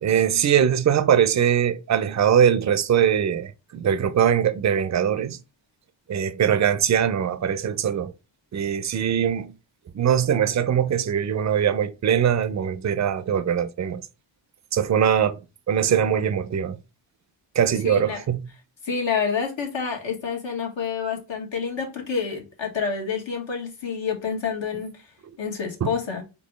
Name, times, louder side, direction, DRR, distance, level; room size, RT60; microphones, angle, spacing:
voice 1, 0.0-5.4 6.1-8.1 8.5-9.5 9.9-14.0 14.7-15.4 15.7-16.8 17.6-18.4 25.8-25.9, right 8 dB, 40° right, 0.5 m, -21 dB
voice 2, 17.8-18.2 18.8-24.9 25.4-26.2, left 6 dB, 70° left, 1.4 m, -28 dB
4.4 x 2.7 x 3.0 m
cardioid pair, 70°, 47 cm